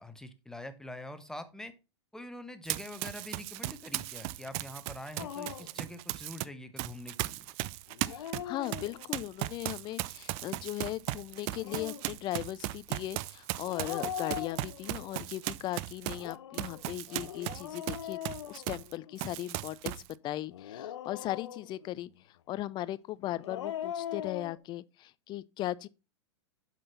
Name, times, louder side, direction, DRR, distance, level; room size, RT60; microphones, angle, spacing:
voice 1, 0.0-1.7 2.1-7.5, left 1 dB, 5° left, 1.0 m, -45 dB
Run, 2.7-6.4 6.8-18.9 19.2-20.1, right 17 dB, 40° right, 0.5 m, -37 dB
Dog, 5.2-5.8 7.9-9.3 11.4-12.1 13.7-15.1 16.1-19.2 20.5-21.9 23.2-24.6, left 10 dB, 70° left, 0.8 m, -41 dB
voice 2, 8.0-18.2 18.5-25.9, left 14 dB, 30° left, 0.5 m, -38 dB
7.7 x 6.1 x 4.2 m
hypercardioid pair, 105°, 15 cm